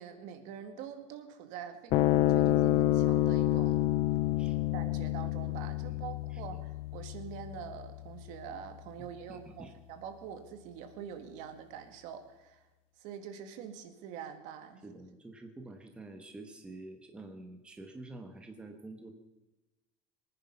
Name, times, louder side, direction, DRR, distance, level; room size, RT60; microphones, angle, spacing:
voice 1, 0.0-3.8 4.7-12.6 13.0-14.8, right 8 dB, 60° right, 7 dB, 1.8 m, -45 dB
sound 1, 1.9-8.6, left 15 dB, 40° left, 0.4 m, -29 dB
voice 2, 6.3-6.6 9.0-9.8 14.8-19.1, right 2 dB, 5° right, 4 dB, 1.0 m, -48 dB
23.0 x 9.9 x 5.5 m, 1.1 s
cardioid pair, 180°, 15 cm